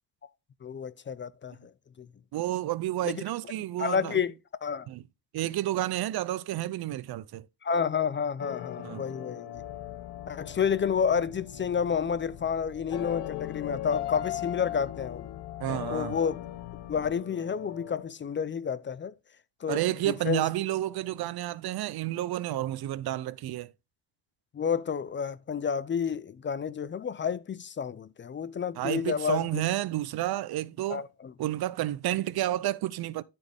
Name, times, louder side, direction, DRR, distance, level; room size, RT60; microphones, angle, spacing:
voice 1, 0.6-1.7 2.0-2.1 3.0-3.2 3.8-4.3 4.6-4.9 7.6-9.5 10.3-15.3 15.9-16.5 16.9-19.1 19.6-20.5 24.5-29.6 30.9-31.3, left 7 dB, 30° left, 0.5 m, -30 dB
voice 2, 2.3-4.2 4.9-5.0 5.3-7.4 8.8-9.0 15.6-16.2 19.7-23.7 28.8-31.0 31.4-33.2, right 14 dB, 70° right, 0.6 m, -30 dB
sound 1, 8.4-18.0, left 14 dB, 90° left, 0.9 m, -39 dB
sound 2, 9.5-17.1, left 11 dB, 50° left, 0.9 m, -48 dB
13.0 x 4.4 x 3.5 m
cardioid pair, 115°, 40 cm